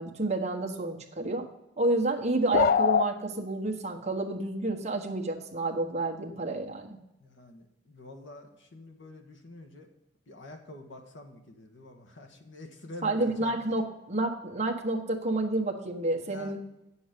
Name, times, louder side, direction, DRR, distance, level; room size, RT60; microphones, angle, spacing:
voice 1, 0.0-1.5 1.8-7.0 13.0-16.6, right 2 dB, 35° right, 0 dB, 1.4 m, -29 dB
sound 1, 2.5-3.1, left 6 dB, 50° left, 0.4 m, -22 dB
voice 2, 7.2-9.9 10.3-13.5 16.2-16.6, left 2 dB, 70° left, 3 dB, 1.6 m, -47 dB
9.5 x 7.1 x 5.2 m, 0.89 s
head